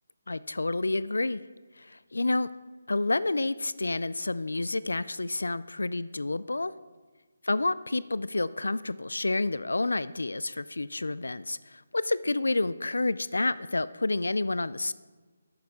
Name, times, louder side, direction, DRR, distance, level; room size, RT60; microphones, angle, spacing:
voice 1, 0.3-1.4 1.8-2.5 2.9-6.7 7.4-14.9, left 2 dB, 80° left, 17 dB, 0.3 m, -29 dB
11.5 x 9.5 x 3.6 m, 1.3 s
figure-of-eight pair, 155°, 0 cm